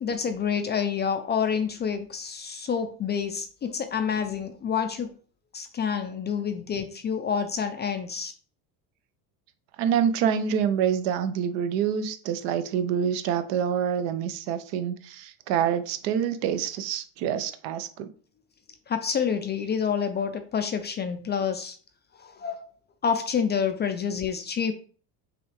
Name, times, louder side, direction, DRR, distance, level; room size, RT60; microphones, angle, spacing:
voice 1, 0.0-5.1 5.5-8.3 18.9-21.8 22.2-22.7 23.0-24.7, left 7 dB, 25° left, 7 dB, 0.4 m, -28 dB
voice 2, 9.8-18.1, right 8 dB, 70° right, 11 dB, 0.7 m, -26 dB
5.8 x 2.4 x 3.2 m, 0.42 s
supercardioid pair, 95°, 46 cm